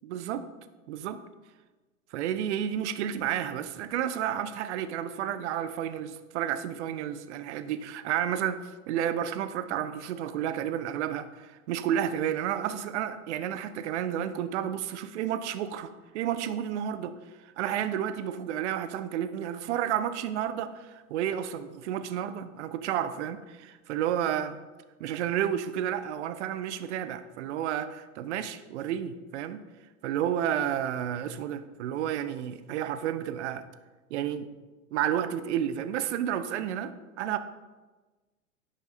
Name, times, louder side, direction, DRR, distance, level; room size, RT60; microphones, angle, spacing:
voice 1, 0.0-0.4 0.9-1.2 2.1-17.1 17.6-24.6 25.0-29.6 30.0-33.6 34.1-34.5 34.9-37.4, right 10 dB, 55° right, 12 dB, 0.9 m, -31 dB
11.0 x 8.3 x 4.1 m, 1.2 s
figure-of-eight pair, 90°, 42 cm